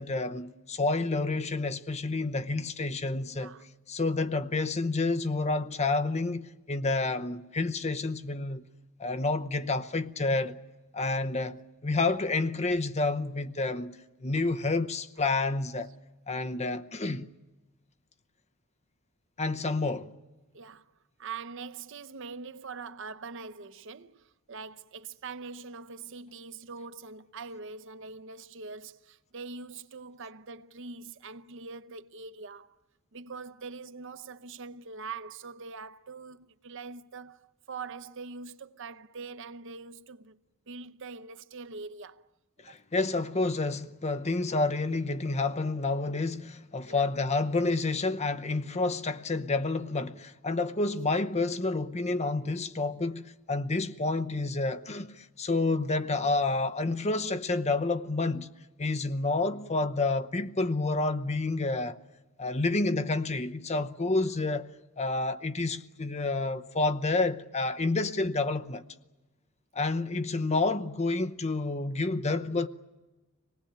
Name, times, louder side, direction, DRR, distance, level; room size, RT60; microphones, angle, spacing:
voice 1, 0.0-3.5 3.9-8.6 9.0-10.6 10.9-14.0 14.2-15.9 16.3-17.3 19.4-20.1 42.6-58.5 58.8-62.0 62.4-64.7 65.0-68.8 69.7-72.7, left 3 dB, 30° left, 0.8 m, -29 dB
voice 2, 3.3-3.6 11.2-11.3 20.5-20.9 21.2-32.7 33.1-40.4 40.7-42.3 46.9-47.1 64.1-64.2 69.8-69.9, right 4 dB, 65° right, 0.7 m, -43 dB
25.5 x 19.0 x 8.8 m
head